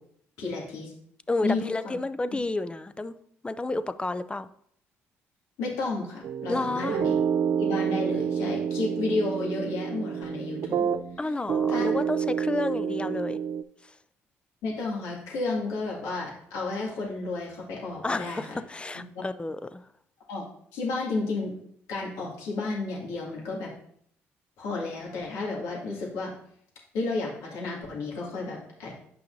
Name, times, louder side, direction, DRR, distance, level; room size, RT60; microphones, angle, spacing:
voice 1, 0.4-0.9 1.4-1.9 5.6-7.2 7.6-10.8 11.7-11.9 14.6-18.6 20.3-20.5 20.7-21.5 21.9-23.7 24.6-26.3 26.9-29.0, left 3 dB, 80° left, -3 dB, 2.2 m, -32 dB
voice 2, 1.3-3.1 3.4-4.5 6.5-7.0 11.2-13.4 13.8-13.9 18.0-19.9, left 2 dB, 20° left, 13 dB, 0.5 m, -30 dB
sound 1, 6.2-11.2 11.5-13.6, right 7 dB, 55° right, 0.4 m, -28 dB
8.8 x 5.6 x 2.7 m, 0.67 s
supercardioid pair, 65°, 6 cm